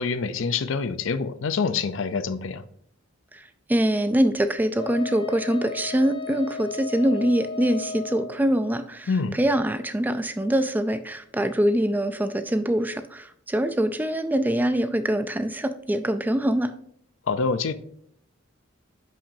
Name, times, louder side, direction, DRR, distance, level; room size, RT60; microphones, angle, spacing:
voice 1, 0.0-2.6 9.1-9.4 17.3-17.7, left 4 dB, 70° left, 0.5 m, -26 dB
voice 2, 3.3-16.7, right 1 dB, 10° right, 0.3 m, -24 dB
Wind instrument woodwind instrument, 4.8-8.3, left 4 dB, 25° left, 0.7 m, -35 dB
10.0 x 5.9 x 2.7 m
head